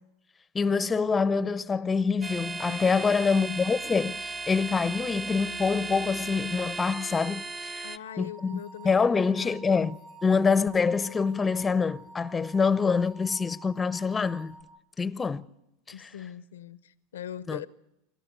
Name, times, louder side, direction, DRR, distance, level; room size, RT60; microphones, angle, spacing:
voice 1, 0.5-7.8 8.2-14.6 15.0-15.5 16.0-16.1 17.5-17.6, left 5 dB, 20° left, 0.7 m, -26 dB
sound 1, 2.2-8.0, right 3 dB, 20° right, 0.8 m, -36 dB
voice 2, 2.7-3.2 7.8-9.7 15.9-17.7, left 10 dB, 80° left, 0.7 m, -42 dB
sound 2, 8.1-14.6, right 3 dB, 50° right, 5.5 m, -49 dB
27.5 x 13.0 x 8.1 m
hypercardioid pair, 95°, 0 cm